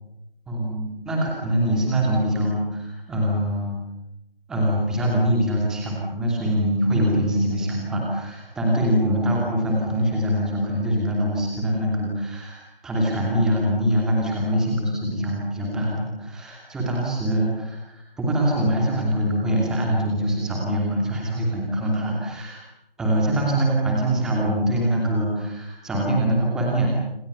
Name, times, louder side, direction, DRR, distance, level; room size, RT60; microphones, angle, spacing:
voice 1, 0.5-3.8 4.5-22.6 23.0-26.9, equal, ahead, -2 dB, 2.7 m, -23 dB
27.5 x 25.5 x 6.9 m, 0.85 s
figure-of-eight pair, 170°, 29 cm